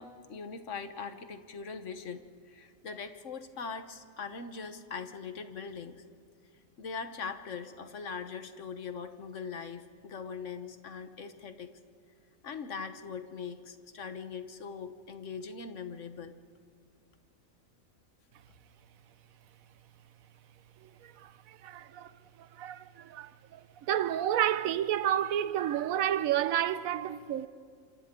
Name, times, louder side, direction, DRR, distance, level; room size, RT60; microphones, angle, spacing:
voice 1, 0.0-2.2 2.5-6.0 6.8-11.7 12.4-16.4, left 5 dB, 60° left, 1.4 m, -41 dB
voice 2, 20.8-27.5, right 11 dB, 80° right, 1.1 m, -31 dB
27.0 x 26.5 x 3.8 m
omnidirectional pair, 1.4 m